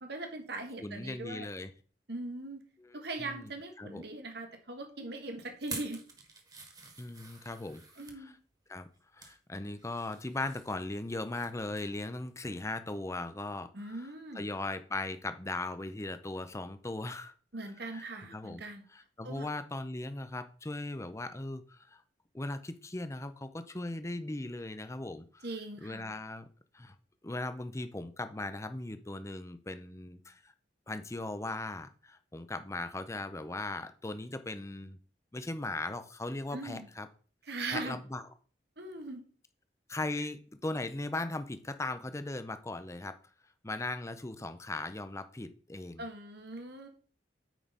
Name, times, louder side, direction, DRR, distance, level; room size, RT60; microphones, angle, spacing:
voice 1, 0.0-1.5 2.1-2.6 2.9-6.0 8.0-8.4 13.7-14.5 17.5-18.8 19.2-19.5 25.4-26.1 36.5-36.9 37.5-38.0 38.8-39.2 46.0-46.9, right 2 dB, 65° right, 5 dB, 1.5 m, -40 dB
voice 2, 0.8-1.7 2.8-3.5 3.8-4.0 7.0-7.8 8.1-8.3 8.7-8.9 9.1-14.1 14.3-17.3 17.9-18.6 18.9-22.0 22.3-25.5 25.8-26.4 26.7-26.9 27.2-30.5 30.9-35.0 35.3-37.1 37.7-38.2 39.9-43.1 43.6-46.0, left 2 dB, 15° left, 10 dB, 0.6 m, -38 dB
sound 1, 5.6-8.2 8.8-9.4 9.8-11.5 11.7-12.0 12.4-12.5, right 3 dB, 20° right, 1.4 m, -47 dB
9.2 x 5.0 x 4.1 m, 0.42 s
head